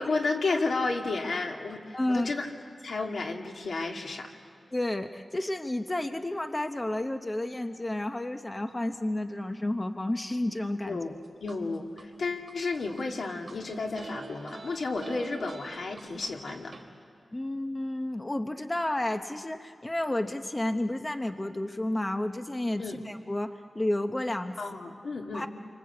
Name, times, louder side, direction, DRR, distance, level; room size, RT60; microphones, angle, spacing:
voice 1, 0.0-2.5 2.8-4.3 10.9-11.1 11.4-11.9 12.2-16.7 22.8-23.0 24.6-25.4, left 3 dB, 75° left, 1 dB, 2.5 m, -32 dB
voice 2, 1.9-2.3 4.7-11.0 17.3-24.6 25.3-25.5, left 1 dB, 20° left, 7 dB, 0.8 m, -31 dB
sound 1, 11.0-12.0 12.5-13.6 14.0-16.8, right 2 dB, 40° right, 3.7 m, -44 dB
29.5 x 25.0 x 8.2 m, 2.2 s
wide cardioid pair, 140°, 0 cm